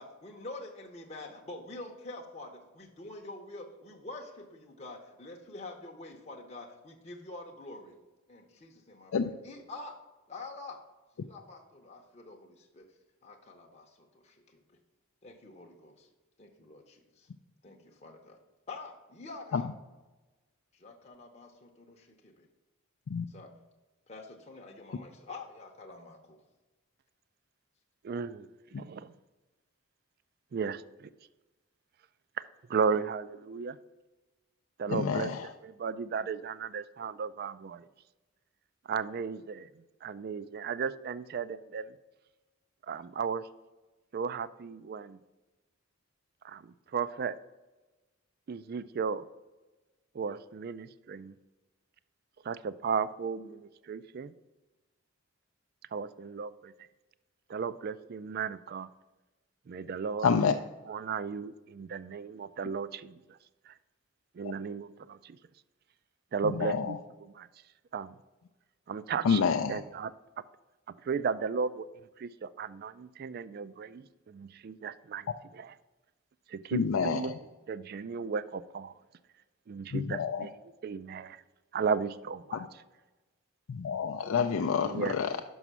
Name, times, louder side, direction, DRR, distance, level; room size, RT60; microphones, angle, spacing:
voice 1, 0.0-7.9 8.3-9.1 9.4-10.0 10.3-10.8 11.2-12.9 13.2-14.8 15.2-16.1 16.4-17.3 17.6-18.4 18.7-19.7 20.7-22.5 23.3-23.5 24.1-26.4, left 2 dB, 30° left, 1 dB, 0.7 m, -46 dB
voice 2, 28.0-28.5 28.7-29.1 30.5-31.1 32.7-33.8 34.8-37.9 38.9-39.7 40.0-41.9 42.9-43.5 44.1-45.2 46.4-47.4 48.5-49.3 50.1-51.4 52.4-54.3 55.9-56.7 57.5-58.9 59.7-60.3 60.9-63.4 63.7-63.8 64.3-65.4 66.3-67.5 67.9-68.2 68.9-69.4 69.7-70.1 71.0-71.9 72.2-75.7 76.5-78.9 79.7-80.5 80.8-81.4 81.7-82.6 84.8-85.4, right 6 dB, 50° right, 16 dB, 0.3 m, -35 dB
voice 3, 34.9-35.4 60.2-60.5 66.6-67.0 69.2-69.8 76.7-77.2 79.9-80.5 82.5-82.6 83.7-85.3, left 6 dB, 80° left, 6 dB, 0.4 m, -28 dB
5.9 x 5.5 x 6.1 m, 1.1 s
head